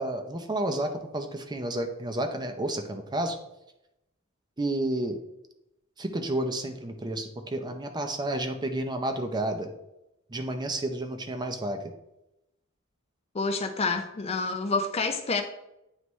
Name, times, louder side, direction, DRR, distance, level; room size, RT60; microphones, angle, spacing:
voice 1, 0.0-3.4 4.6-5.2 6.0-9.7 10.3-11.8, right 1 dB, 20° right, 5 dB, 0.6 m, -31 dB
voice 2, 13.3-15.4, left 4 dB, 30° left, 7 dB, 0.4 m, -28 dB
9.4 x 3.2 x 3.1 m, 0.87 s
head